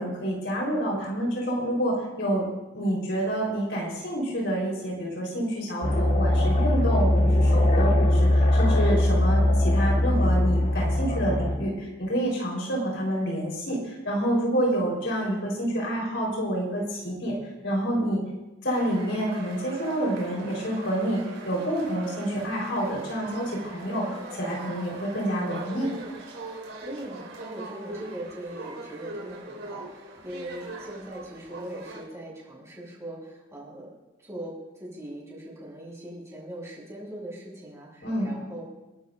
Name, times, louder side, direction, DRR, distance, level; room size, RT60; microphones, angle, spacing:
voice 1, 0.0-2.4 2.7-17.4 17.6-18.2 18.6-21.2 21.5-24.0 24.4-25.9 38.0-38.3, right 1 dB, 75° left, -3 dB, 4.1 m, -28 dB
sound 1, 5.8-11.6, left 1 dB, 40° left, 1.4 m, -21 dB
sound 2, 18.7-32.1, right 2 dB, 85° right, 4.0 m, -41 dB
voice 2, 23.8-24.2 26.8-33.9 34.2-38.6, right 1 dB, 15° right, -4 dB, 6.5 m, -40 dB
30.0 x 12.5 x 2.6 m, 1.1 s
head